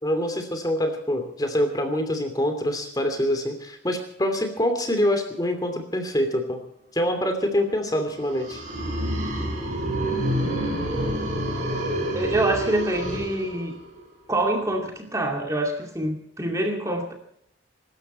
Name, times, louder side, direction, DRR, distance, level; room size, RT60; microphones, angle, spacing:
voice 1, 0.0-6.6 6.9-8.6, equal, 20° left, 6 dB, 2.7 m, -25 dB
sound 1, 8.1-14.0, right 1 dB, 40° right, 6.2 m, -28 dB
voice 2, 12.1-13.8 14.3-17.1, right 1 dB, 15° right, 2 dB, 2.4 m, -26 dB
24.0 x 13.0 x 4.4 m, 0.72 s
head